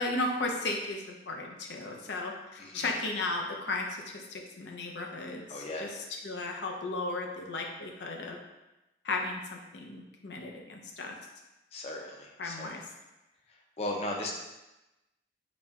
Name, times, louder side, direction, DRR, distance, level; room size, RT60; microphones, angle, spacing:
voice 1, 0.0-8.4 9.0-11.1 12.4-12.8, left 2 dB, 85° left, 1 dB, 0.6 m, -35 dB
voice 2, 2.6-2.9 5.5-5.9 11.7-12.8 13.8-14.3, left 1 dB, 35° left, 0 dB, 0.5 m, -37 dB
4.2 x 2.2 x 3.5 m, 1.0 s
head